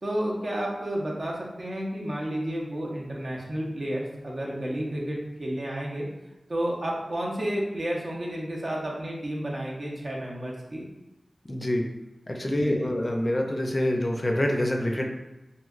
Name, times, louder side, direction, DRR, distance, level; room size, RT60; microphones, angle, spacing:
voice 1, 0.0-6.1 6.5-10.8 12.5-13.0, right 1 dB, 60° right, -3 dB, 0.6 m, -31 dB
voice 2, 11.5-11.8 12.3-15.0, left 1 dB, 35° left, 1 dB, 0.4 m, -26 dB
3.0 x 2.7 x 2.4 m, 1.0 s
wide cardioid pair, 55°, 0 cm